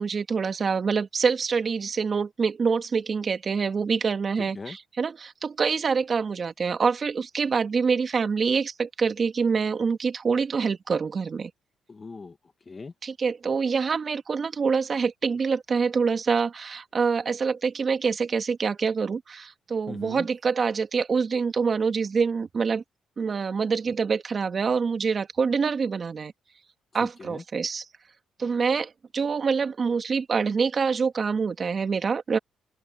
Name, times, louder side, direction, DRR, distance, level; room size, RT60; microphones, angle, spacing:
voice 1, 0.0-11.5 13.0-22.8 23.2-26.3 26.9-27.8 28.4-32.4, right 5 dB, 40° right, 2.3 m, -26 dB
voice 2, 4.4-4.8 11.9-12.9 19.9-20.3 27.0-27.4, left 4 dB, 30° left, 2.1 m, -40 dB
cardioid pair, 90°, 0 cm